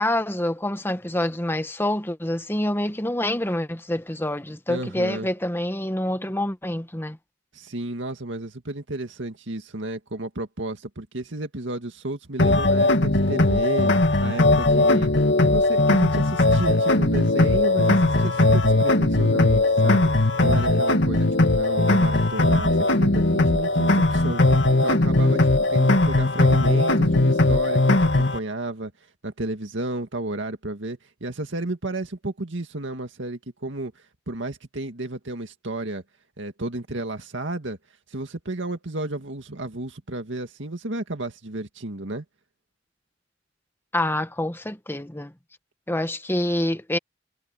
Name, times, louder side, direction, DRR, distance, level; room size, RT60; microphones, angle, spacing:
voice 1, 0.0-7.2 43.9-45.3 45.9-47.0, left 1 dB, 10° left, 1.4 m, -26 dB
voice 2, 4.7-5.3 7.5-13.9 14.2-15.1 15.4-28.9 29.2-33.9 34.3-36.0 36.4-37.8 38.1-42.2, right 2 dB, 80° right, 2.1 m, -32 dB
sound 1, 12.4-28.4, left 2 dB, 70° left, 2.2 m, -19 dB
head